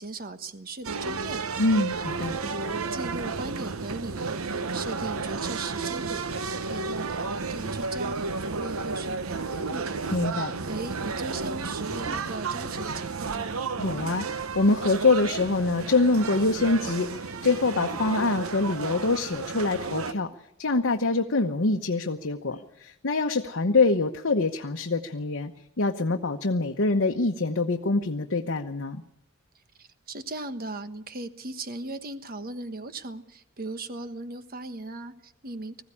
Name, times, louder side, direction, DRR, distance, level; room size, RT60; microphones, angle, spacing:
voice 1, 0.0-1.4 2.4-9.9 10.3-13.6 29.8-35.8, right 2 dB, 45° right, 10 dB, 1.3 m, -38 dB
sound 1, 0.8-20.1, right 4 dB, 80° right, 0.9 m, -32 dB
voice 2, 1.6-2.3 10.1-10.5 13.8-20.3 20.6-25.5 25.8-29.0, left 3 dB, 60° left, 3 dB, 1.0 m, -25 dB
sound 2, 12.0-12.3 14.0-14.4 15.8-16.1 17.9-18.1 20.0-20.4 22.5-22.7, equal, 40° left, 1.9 m, -45 dB
20.5 x 15.5 x 9.9 m, 0.81 s
head